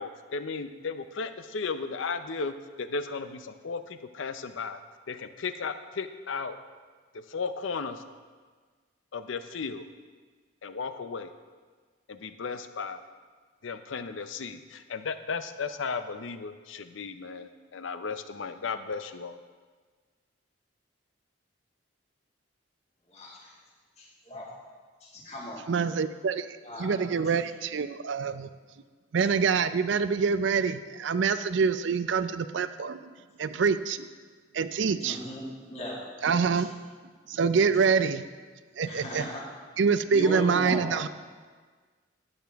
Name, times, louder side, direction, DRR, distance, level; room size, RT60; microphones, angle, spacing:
voice 1, 0.0-4.8 5.1-6.6 7.3-8.0 9.1-9.8 10.6-11.3 12.1-13.0 13.6-19.4, left 4 dB, 75° left, 10 dB, 0.6 m, -35 dB
voice 2, 23.1-23.6 24.0-24.5 25.0-25.7 26.6-27.4 35.0-36.0 36.6-36.7 37.7-37.8 38.8-39.5 40.1-40.9, equal, 35° left, -4 dB, 2.0 m, -38 dB
voice 3, 25.7-26.5 26.8-28.5 29.1-33.1 33.4-34.1 34.5-35.2 36.2-36.7 37.3-38.2 38.8-39.3 39.8-41.1, right 5 dB, 65° right, 13 dB, 0.4 m, -25 dB
12.0 x 8.9 x 3.5 m, 1.5 s
head